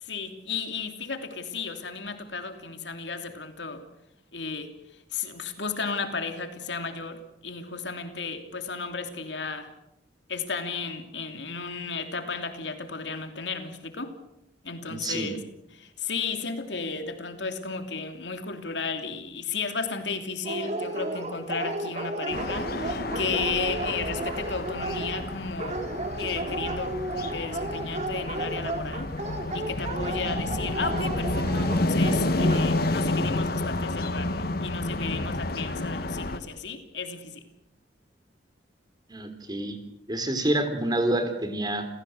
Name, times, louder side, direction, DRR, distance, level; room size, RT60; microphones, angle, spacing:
voice 1, 0.0-3.8 4.3-4.7 5.1-9.7 10.3-14.2 14.6-15.4 15.7-25.8 26.2-29.1 29.5-37.4, left 4 dB, 85° left, 7 dB, 3.1 m, -34 dB
voice 2, 14.9-15.3 39.1-39.8 40.1-41.9, right 1 dB, 25° right, 8 dB, 3.7 m, -27 dB
Dog, 20.4-32.6, right 1 dB, 40° right, 3.5 m, -33 dB
sound 1, 22.3-36.4, left 2 dB, 60° left, 1.6 m, -30 dB
29.5 x 16.0 x 8.0 m, 0.85 s
head